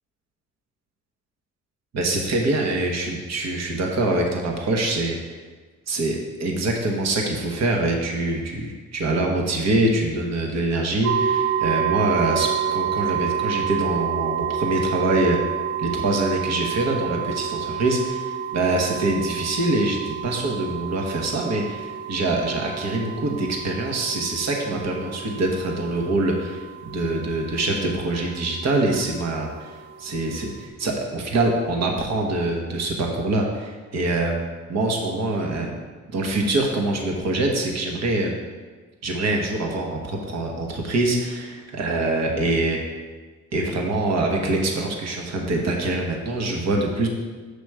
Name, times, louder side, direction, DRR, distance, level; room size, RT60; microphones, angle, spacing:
voice 1, 1.9-5.3 5.9-15.4 15.8-29.7 30.0-34.4 34.7-35.7 36.1-38.3 39.0-42.8 43.5-47.1, right 2 dB, 60° right, 1 dB, 1.2 m, -24 dB
sound 1, 11.0-30.7, right 8 dB, 90° right, 0.9 m, -29 dB
6.6 x 5.0 x 4.8 m, 1.4 s
cardioid pair, 90°, 30 cm